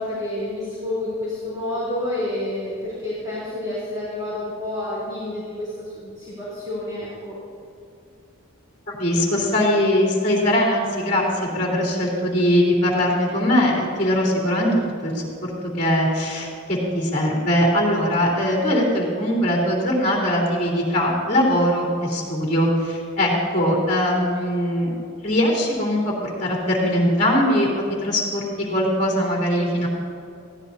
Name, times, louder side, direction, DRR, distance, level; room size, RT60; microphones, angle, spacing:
voice 1, 0.0-7.4, left 1 dB, 20° right, -9 dB, 3.5 m, -29 dB
voice 2, 8.9-14.7 15.0-15.5 15.8-24.9 25.2-29.9, equal, 30° left, -4 dB, 3.1 m, -21 dB
20.5 x 15.5 x 2.8 m, 2.4 s
head